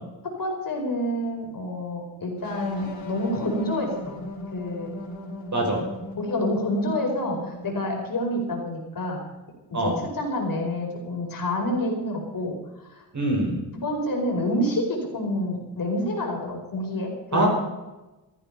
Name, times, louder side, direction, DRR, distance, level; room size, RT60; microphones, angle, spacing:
voice 1, 0.2-4.2 4.5-4.9 6.2-9.2 9.8-12.6 12.9-13.0 13.7-17.5, left 1 dB, 45° left, 0 dB, 5.0 m, -28 dB
sound 1, 2.4-8.1, left 1 dB, 70° left, 5.7 m, -38 dB
voice 2, 13.1-13.6 17.3-17.5, right 1 dB, 40° right, 0 dB, 5.3 m, -23 dB
15.5 x 14.5 x 5.6 m, 1.1 s
wide cardioid pair, 145°, 46 cm